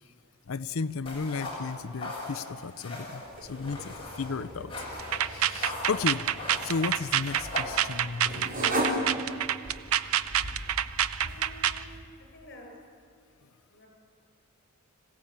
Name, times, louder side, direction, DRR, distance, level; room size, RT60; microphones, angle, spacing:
voice 1, 0.5-3.2 3.5-4.7 5.2-6.3 6.6-8.5, left 4 dB, 75° left, 11 dB, 0.6 m, -34 dB
sound 1, 1.1-8.2, left 2 dB, 25° left, 6.5 m, -40 dB
sound 2, 3.3-12.0, right 1 dB, 45° right, 4.1 m, -37 dB
sound 3, 5.0-11.8, right 10 dB, 90° right, 0.7 m, -27 dB
voice 2, 11.2-11.9 12.3-12.7 13.7-13.9, left 1 dB, 55° left, 1 dB, 6.8 m, -50 dB
26.0 x 16.0 x 8.7 m, 2.3 s
head